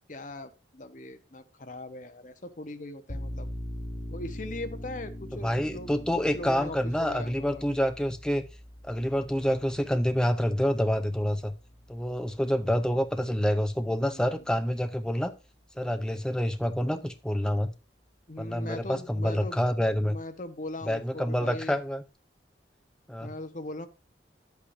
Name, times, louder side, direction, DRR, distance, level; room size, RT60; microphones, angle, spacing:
voice 1, 0.1-3.5 4.1-5.9 6.3-7.7 14.0-14.4 18.3-21.8 23.2-23.9, left 2 dB, 45° left, 8 dB, 1.0 m, -40 dB
sound 1, 3.1-14.4, equal, 65° left, 3.6 m, -43 dB
voice 2, 5.4-8.4 8.8-11.5 11.9-15.3 15.8-17.7 18.4-20.2 20.9-22.0 23.1-23.3, equal, 5° left, 7 dB, 0.6 m, -27 dB
10.0 x 8.3 x 2.6 m, 0.29 s
head